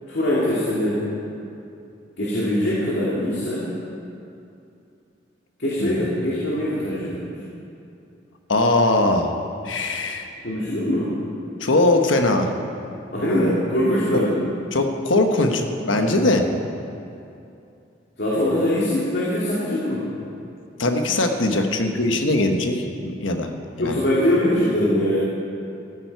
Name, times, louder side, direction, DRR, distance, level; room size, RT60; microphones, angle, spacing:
voice 1, 0.1-1.1 2.2-3.6 5.6-7.3 10.4-11.1 13.1-14.4 18.2-20.1 23.8-25.2, left 1 dB, 60° left, -8 dB, 2.4 m, -22 dB
voice 2, 8.5-9.3 9.6-10.3 11.6-12.5 14.1-14.2 14.7-16.5 20.8-23.5 23.8-24.0, left 2 dB, 90° left, 5 dB, 1.2 m, -20 dB
14.0 x 14.0 x 4.7 m, 2.6 s
head